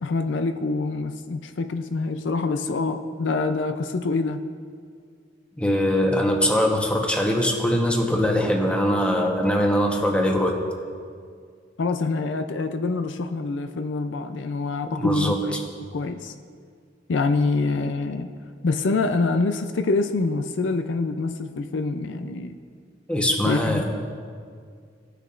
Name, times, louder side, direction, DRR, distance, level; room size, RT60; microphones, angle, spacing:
voice 1, 0.0-4.4 11.8-15.6 15.9-16.3 17.1-18.3 18.6-22.6 23.4-23.8, left 3 dB, 70° left, 8 dB, 0.5 m, -25 dB
voice 2, 5.6-10.6 14.9-15.6 23.1-23.8, equal, 5° left, 1 dB, 1.0 m, -22 dB
17.5 x 6.7 x 2.5 m, 2.1 s
head